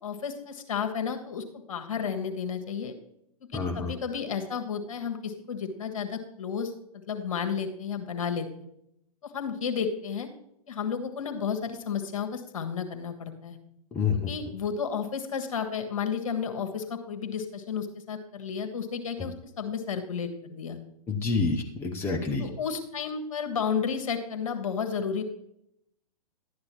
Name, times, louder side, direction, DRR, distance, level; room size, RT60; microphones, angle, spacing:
voice 1, 0.0-2.9 3.5-6.7 7.1-8.5 9.2-10.3 10.7-13.6 14.1-20.8 22.4-25.2, left 6 dB, 60° left, 6 dB, 1.5 m, -32 dB
voice 2, 3.5-3.9 13.9-14.3 21.1-22.5, left 4 dB, 10° left, 1 dB, 0.8 m, -28 dB
11.5 x 9.4 x 3.0 m, 0.77 s
figure-of-eight pair, 115°, 20 cm